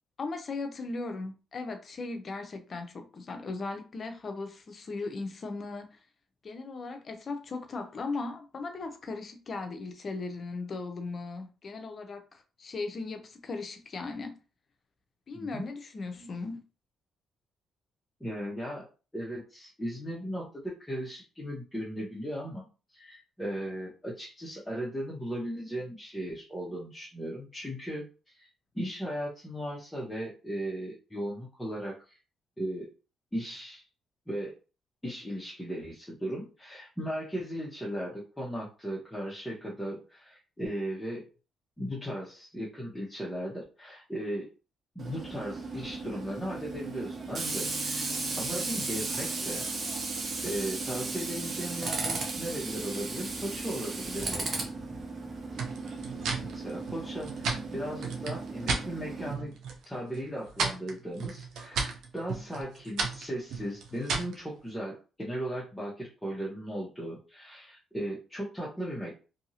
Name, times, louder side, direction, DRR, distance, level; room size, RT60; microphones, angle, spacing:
voice 1, 0.2-6.0 6.4-14.4 15.3-16.6, left 3 dB, 45° left, 0.6 m, -37 dB
voice 2, 15.3-15.7 18.2-18.9 19.1-22.6 22.9-28.5 28.7-32.2 32.6-32.9 33.3-33.8 34.3-34.5 35.0-41.3 41.8-44.5 44.9-48.1 48.4-49.7 50.4-54.5 56.5-59.5 59.8-69.1, equal, 5° left, 0.9 m, -37 dB
Tools, 45.0-59.3, right 3 dB, 45° right, 0.8 m, -35 dB
sound 1, 55.6-58.9 59.3-59.8 60.1-64.4, right 4 dB, 75° right, 0.7 m, -34 dB
2.7 x 2.6 x 2.8 m
cardioid pair, 90°, 0 cm